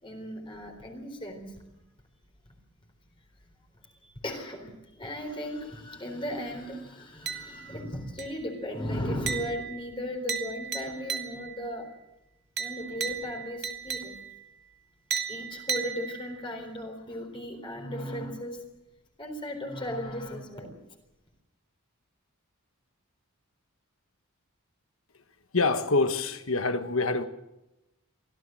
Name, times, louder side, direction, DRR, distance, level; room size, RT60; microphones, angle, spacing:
voice 1, 0.0-1.6 2.5-2.6 3.8-11.9 12.6-14.2 15.3-18.6 19.2-20.8, equal, 25° left, 3.9 m, -36 dB
sound 1, 7.3-7.8 8.2-8.6 9.3-11.7 12.6-14.5 15.1-16.5, right 6 dB, 50° right, 1.7 m, -35 dB
voice 2, 25.5-27.3, left 3 dB, 65° left, 1.5 m, -26 dB
24.5 x 16.0 x 7.7 m
head